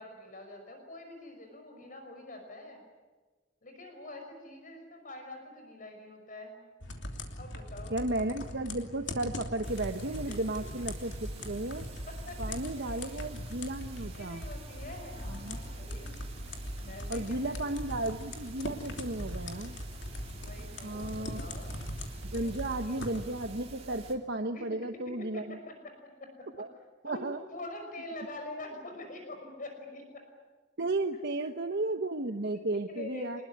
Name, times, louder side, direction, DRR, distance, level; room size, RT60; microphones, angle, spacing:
voice 1, 0.0-2.8 3.6-6.6 7.4-8.0 12.1-13.2 14.0-16.1 16.8-17.6 20.3-21.8 22.3-22.5 22.8-23.2 24.5-24.7 25.2-25.7 26.2-26.7 27.0-30.2 32.9-33.4, left 2 dB, 45° left, 4 dB, 5.7 m, -45 dB
sound 1, 6.8-23.5, left 1 dB, 75° left, 3.0 m, -41 dB
voice 2, 7.9-11.8 12.4-14.4 15.3-15.6 17.1-19.8 20.8-21.4 22.2-25.6 26.6-26.7 27.0-27.4 30.8-33.4, right 2 dB, 65° right, 6 dB, 1.1 m, -34 dB
sound 2, 9.6-24.2, right 2 dB, 35° right, 3.5 m, -48 dB
25.0 x 21.0 x 9.7 m, 1.3 s
head